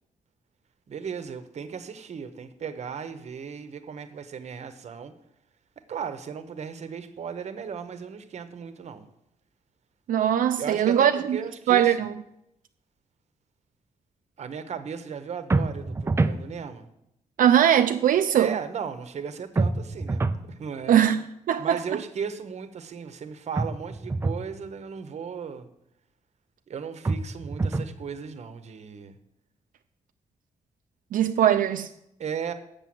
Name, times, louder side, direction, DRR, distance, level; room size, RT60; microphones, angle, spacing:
voice 1, 0.9-5.1 5.9-9.1 10.6-11.9 14.4-16.9 18.3-21.0 21.6-25.7 26.7-29.2 32.2-32.5, right 6 dB, 55° right, 0.9 m, -36 dB
voice 2, 10.1-11.4 11.7-12.1 17.4-18.5 20.9-21.2 21.5-21.8 31.1-31.9, right 10 dB, 90° right, 0.5 m, -20 dB
sound 1, 15.5-16.4 19.6-20.4 23.5-24.4 27.0-28.0, right 3 dB, 20° right, 0.4 m, -26 dB
8.5 x 6.8 x 7.6 m
wide cardioid pair, 170°, 14 cm